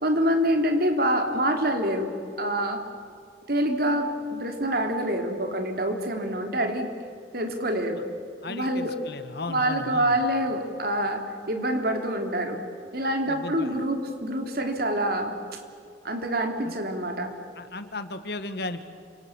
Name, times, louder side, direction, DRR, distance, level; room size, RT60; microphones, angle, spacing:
voice 1, 0.0-2.1 2.4-2.8 3.5-6.9 7.3-8.0 8.5-8.9 9.5-12.6 12.9-15.6 16.0-17.3, right 1 dB, 60° right, 5 dB, 3.1 m, -26 dB
voice 2, 8.4-10.2 13.3-13.8 16.6-16.7 17.5-18.8, left 2 dB, 60° left, 10 dB, 1.7 m, -35 dB
30.0 x 25.5 x 7.3 m, 2.3 s
head